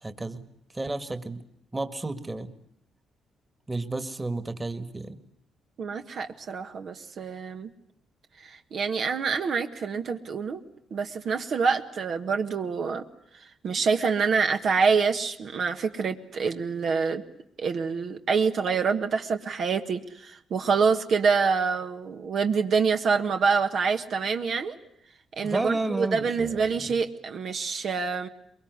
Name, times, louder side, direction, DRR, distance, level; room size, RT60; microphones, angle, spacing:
voice 1, 0.0-0.4 0.7-1.4 1.7-2.5 3.7-5.2 25.4-27.0, right 2 dB, 15° right, 11 dB, 1.9 m, -32 dB
voice 2, 5.8-7.7 8.4-10.6 10.9-13.0 13.6-17.2 17.6-24.8 25.4-28.3, right 5 dB, 60° right, 5 dB, 1.4 m, -26 dB
23.5 x 22.0 x 9.5 m, 0.70 s
cardioid pair, 90°, 0 cm